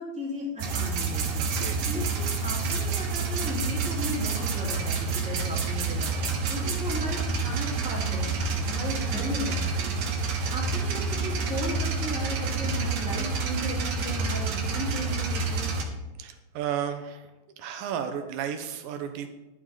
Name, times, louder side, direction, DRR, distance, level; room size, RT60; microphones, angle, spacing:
voice 1, 0.0-9.9 10.2-15.7, left 1 dB, ahead, -5 dB, 3.1 m, -36 dB
sound 1, 0.6-15.8, right 4 dB, 60° right, 2.3 m, -28 dB
voice 2, 1.5-1.8 16.2-17.3 17.6-19.3, right 8 dB, 85° right, 8 dB, 2.6 m, -33 dB
11.5 x 10.5 x 3.9 m, 1.1 s
omnidirectional pair, 3.9 m